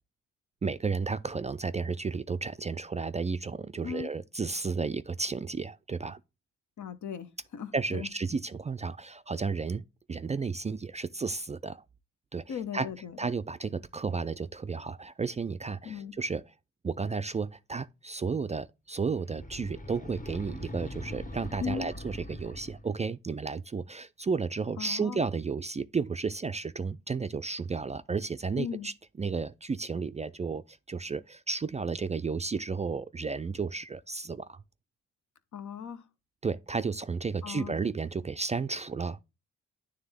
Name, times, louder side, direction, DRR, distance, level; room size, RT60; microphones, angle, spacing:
voice 1, 0.6-6.2 7.7-9.8 10.1-11.8 12.3-12.9 13.2-16.4 16.8-34.6 36.4-39.2, right 4 dB, 25° right, 0.3 m, -33 dB
voice 2, 6.8-8.1 12.5-13.2 15.8-16.1 21.6-21.9 24.8-25.2 28.6-28.9 35.5-36.0 37.4-37.7, left 7 dB, 70° left, 1.0 m, -37 dB
sound 1, 19.1-23.0, left 1 dB, 25° left, 1.2 m, -42 dB
9.5 x 3.4 x 3.4 m
cardioid pair, 65°, 31 cm